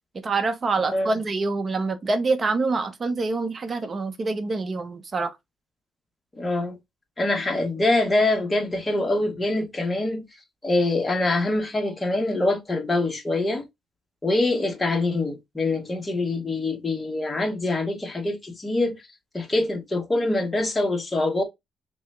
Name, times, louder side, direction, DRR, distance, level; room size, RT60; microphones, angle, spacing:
voice 1, 0.1-5.4, right 3 dB, 35° right, 0.8 m, -26 dB
voice 2, 6.4-6.8 7.2-10.2 10.6-13.6 14.2-19.0 19.3-21.4, left 2 dB, 20° left, 1.3 m, -24 dB
3.4 x 3.0 x 3.2 m
cardioid pair, 90°, 0 cm